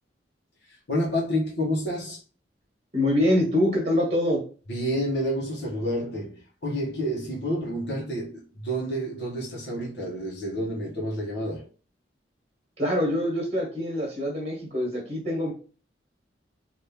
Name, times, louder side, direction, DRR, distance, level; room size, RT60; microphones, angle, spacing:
voice 1, 0.7-2.2 4.7-11.6, equal, 65° left, 1.0 m, -29 dB
voice 2, 2.9-4.4 12.8-15.5, left 1 dB, 35° right, 1.3 m, -24 dB
3.4 x 2.5 x 2.8 m
head